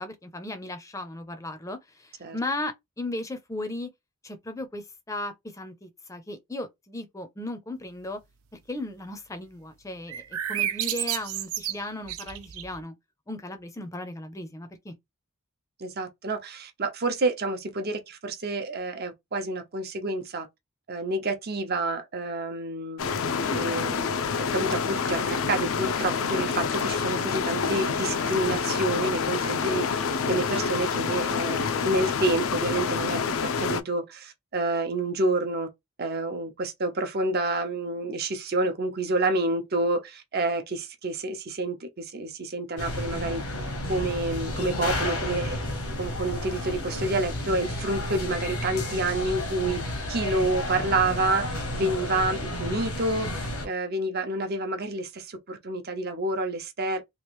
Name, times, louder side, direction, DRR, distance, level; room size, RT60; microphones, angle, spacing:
voice 1, 0.0-3.9 4.2-8.2 8.5-10.2 10.5-12.9 13.3-14.9, left 2 dB, 15° left, 0.6 m, -36 dB
sound 1, 10.1-12.8, right 12 dB, 85° right, 0.5 m, -31 dB
voice 2, 15.8-20.5 20.9-23.1 23.5-24.2 24.5-35.7 36.0-43.4 43.9-45.6 46.0-57.0, right 2 dB, 50° right, 0.8 m, -29 dB
sound 2, 23.0-33.8, left 6 dB, 70° left, 0.5 m, -27 dB
sound 3, 42.8-53.7, left 1 dB, 85° left, 1.1 m, -32 dB
3.1 x 2.5 x 3.0 m
head